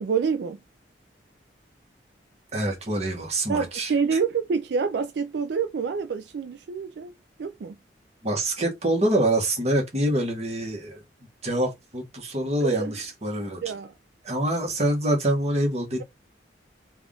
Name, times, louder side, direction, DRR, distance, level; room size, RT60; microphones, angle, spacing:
voice 1, 0.0-0.6 3.5-7.1 7.4-7.8 12.6-13.0 13.6-13.9, right 5 dB, 70° right, 0.4 m, -27 dB
voice 2, 2.5-4.2 8.2-11.0 11.4-13.6 14.2-16.0, right 1 dB, 35° right, 1.2 m, -25 dB
3.4 x 2.4 x 3.7 m
head